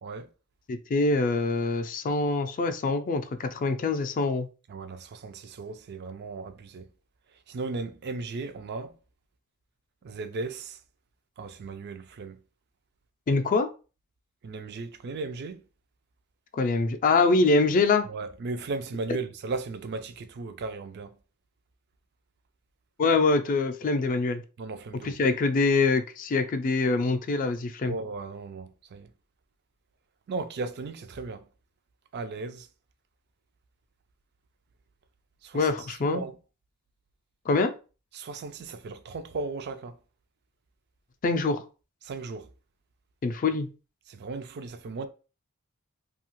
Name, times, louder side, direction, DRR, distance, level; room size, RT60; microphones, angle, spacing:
voice 1, 0.7-4.5 13.3-13.7 16.5-18.1 23.0-24.4 25.0-28.0 35.5-36.2 37.5-37.7 41.2-41.6 43.2-43.7, left 3 dB, 40° left, 0.3 m, -24 dB
voice 2, 4.7-6.9 7.5-8.9 10.0-10.8 11.4-12.4 14.4-15.6 18.1-21.2 24.6-25.1 27.9-29.1 30.3-31.5 32.1-32.7 35.4-36.4 38.1-40.0 42.0-42.5 44.1-45.1, right 3 dB, 50° right, 0.3 m, -36 dB
2.7 x 2.3 x 3.0 m
head